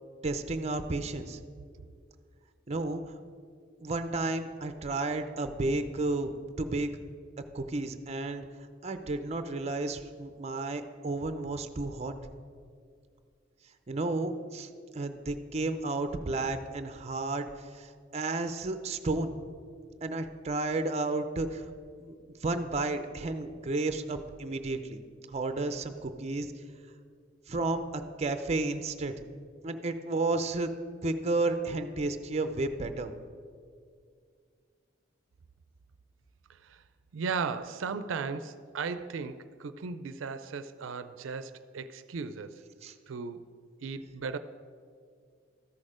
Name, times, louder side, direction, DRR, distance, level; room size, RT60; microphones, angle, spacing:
voice 1, 0.2-1.4 2.7-3.0 3.8-6.9 7.5-8.4 8.8-12.1 13.9-19.3 20.0-21.7 22.0-25.0 25.3-26.5 27.5-29.1 29.6-30.7 31.0-33.1 42.8-42.9, right 2 dB, 35° right, 9 dB, 0.5 m, -32 dB
voice 2, 37.1-42.6 43.1-43.4 43.8-44.4, right 5 dB, 85° right, 12 dB, 0.4 m, -36 dB
13.5 x 6.4 x 5.0 m, 2.1 s
head